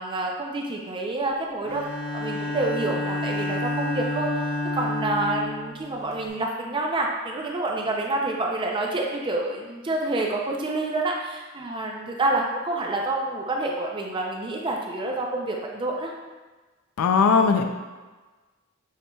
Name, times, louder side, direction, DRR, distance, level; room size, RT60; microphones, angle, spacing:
voice 1, 0.0-1.8 2.1-4.3 4.7-16.1, right 2 dB, 20° right, 0 dB, 0.4 m, -28 dB
Bowed string instrument, 1.6-6.3, left 1 dB, 40° left, 1.0 m, -29 dB
voice 2, 17.0-17.6, left 5 dB, 80° left, 6 dB, 0.3 m, -18 dB
6.5 x 3.1 x 2.2 m, 1.3 s
head